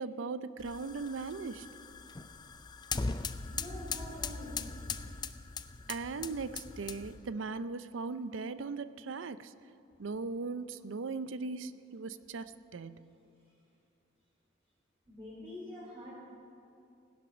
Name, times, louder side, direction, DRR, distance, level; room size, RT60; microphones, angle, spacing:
voice 1, 0.0-1.7 5.9-9.5 10.0-13.1, right 4 dB, 75° right, 14 dB, 0.5 m, -38 dB
sound 1, 0.6-7.3, left 4 dB, 20° left, 0.4 m, -40 dB
voice 2, 3.5-4.6 15.1-16.1, left 1 dB, 25° right, -10 dB, 4.3 m, -45 dB
17.0 x 11.0 x 6.2 m, 2.6 s
head